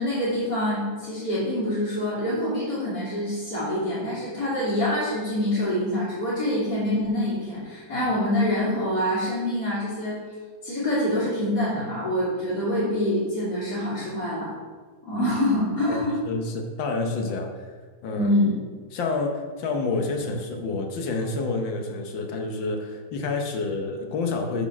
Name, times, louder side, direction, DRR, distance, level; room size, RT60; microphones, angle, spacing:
voice 1, 0.0-10.2 10.6-14.5 15.0-16.2 18.2-18.6, left 1 dB, 55° left, -10 dB, 3.1 m, -25 dB
voice 2, 16.2-17.7 18.0-18.3 18.9-24.7, left 3 dB, 75° left, 3 dB, 1.6 m, -28 dB
8.9 x 4.3 x 6.0 m, 1.5 s
omnidirectional pair, 2.1 m